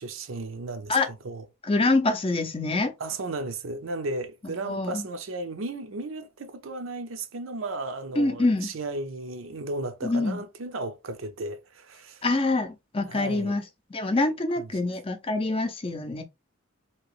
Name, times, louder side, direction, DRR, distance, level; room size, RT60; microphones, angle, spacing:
voice 1, 0.0-1.0 1.2-1.4 3.0-12.2 13.0-13.6 14.6-14.7, right 2 dB, 70° right, 0.6 m, -34 dB
voice 2, 1.6-2.9 4.7-5.0 8.2-8.7 10.0-10.4 12.2-13.6 13.9-16.2, left 2 dB, 25° left, 0.5 m, -25 dB
2.9 x 2.9 x 3.0 m
head